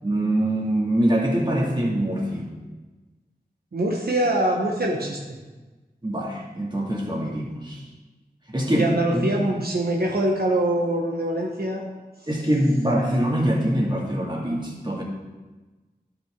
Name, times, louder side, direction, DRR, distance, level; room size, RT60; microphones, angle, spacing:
voice 1, 0.0-2.5 6.0-7.8 8.5-8.8 9.1-9.3 12.3-15.0, right 1 dB, 25° right, -3 dB, 2.2 m, -24 dB
voice 2, 3.7-5.2 8.7-11.8, right 1 dB, 70° right, -1 dB, 1.0 m, -24 dB
12.5 x 5.9 x 3.7 m, 1.2 s
wide cardioid pair, 50°, 17 cm